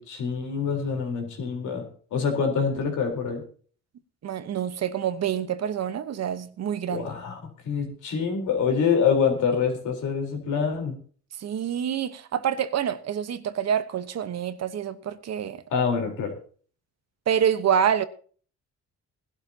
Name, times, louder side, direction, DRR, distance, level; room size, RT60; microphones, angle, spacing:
voice 1, 0.0-3.4 6.9-11.0 15.7-16.4, left 6 dB, 80° left, 4.1 m, -26 dB
voice 2, 4.2-7.1 11.4-15.6 17.3-18.0, right 9 dB, 60° right, 1.1 m, -27 dB
20.0 x 12.0 x 2.9 m
cardioid pair, 90°, 30 cm